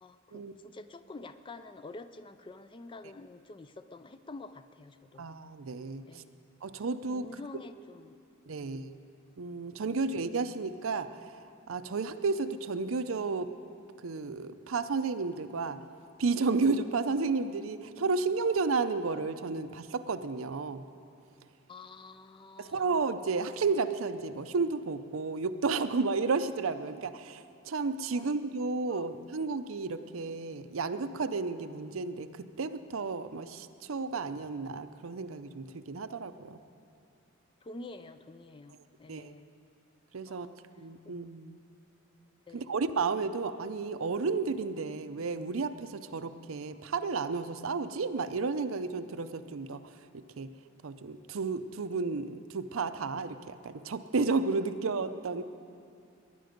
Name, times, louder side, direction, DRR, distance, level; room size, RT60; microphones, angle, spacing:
voice 1, 0.0-5.2 6.0-6.4 7.1-8.2 8.6-8.9 10.1-10.3 21.7-23.0 28.1-28.3 28.8-29.1 37.6-39.5 40.3-40.6 42.5-42.8, left 3 dB, 25° left, 11 dB, 0.4 m, -48 dB
voice 2, 5.2-6.2 6.6-7.3 8.5-9.0 9.4-11.1 11.7-13.5 14.0-15.8 16.2-20.8 22.6-36.6 39.1-39.3 40.1-40.5 40.8-41.6 42.5-49.8 50.1-50.5 50.8-55.4, right 4 dB, 85° right, 11 dB, 0.6 m, -32 dB
20.0 x 10.0 x 5.2 m, 2.4 s
head